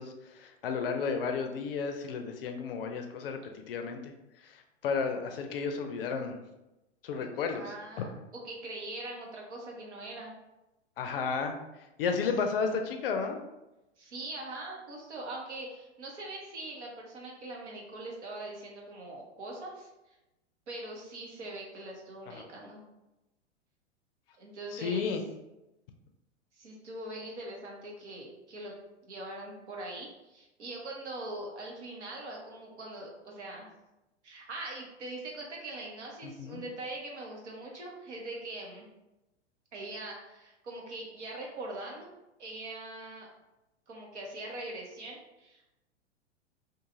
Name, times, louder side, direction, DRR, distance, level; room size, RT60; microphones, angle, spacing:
voice 1, 0.0-4.1 4.4-6.4 7.0-7.6 11.0-11.5 12.0-13.4 22.3-22.4 24.7-25.2 36.2-36.6, left 5 dB, 55° left, 5 dB, 0.4 m, -33 dB
voice 2, 7.2-10.3 14.0-19.9 20.7-22.8 24.4-25.2 26.5-28.7 29.0-33.7 34.2-38.9 39.7-42.1 42.4-43.3 43.9-45.7, right 2 dB, 75° right, -2 dB, 0.9 m, -42 dB
2.6 x 2.4 x 2.6 m, 0.96 s
figure-of-eight pair, 100°, 35 cm